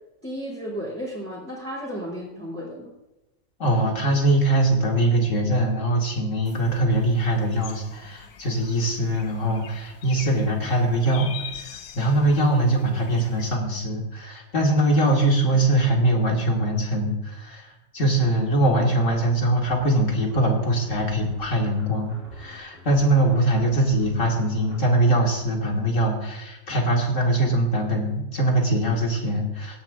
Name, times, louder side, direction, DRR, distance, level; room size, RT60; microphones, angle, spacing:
voice 1, 0.2-2.9, equal, 10° left, -7 dB, 3.4 m, -33 dB
voice 2, 3.6-29.8, right 1 dB, 60° left, 0 dB, 2.5 m, -22 dB
sound 1, 6.5-13.6, left 8 dB, 85° left, 1.3 m, -43 dB
sound 2, 19.6-24.8, equal, 50° right, 3.0 m, -47 dB
17.0 x 10.5 x 2.6 m, 1.0 s
omnidirectional pair, 1.5 m